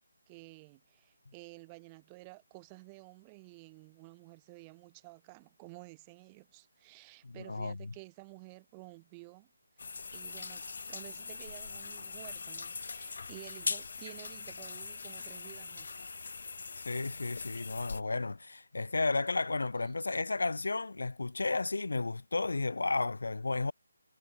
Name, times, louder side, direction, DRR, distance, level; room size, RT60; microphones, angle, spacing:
voice 1, 0.3-9.5 10.1-15.9 19.9-20.0, right 28 dB, 10° right, 1.3 m, -52 dB
voice 2, 7.2-7.7 16.8-23.7, left 3 dB, 90° left, 0.6 m, -33 dB
sound 1, 9.8-18.0, left 4 dB, 50° left, 0.3 m, -41 dB
hypercardioid pair, 175°, 0 cm